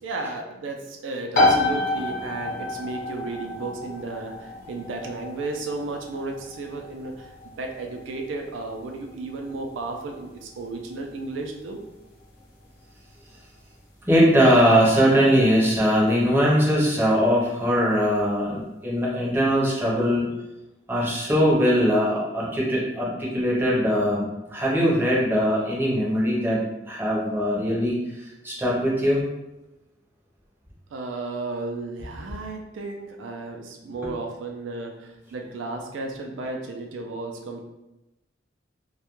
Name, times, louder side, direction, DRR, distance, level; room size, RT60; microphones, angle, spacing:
voice 1, 0.0-11.8 30.9-37.6, right 3 dB, 85° right, 2 dB, 0.4 m, -34 dB
sound 1, 1.3-15.8, left 2 dB, 50° left, 0.8 m, -30 dB
voice 2, 14.1-20.3 20.9-29.2, equal, 10° right, -5 dB, 0.6 m, -21 dB
2.3 x 2.1 x 2.9 m, 0.96 s
head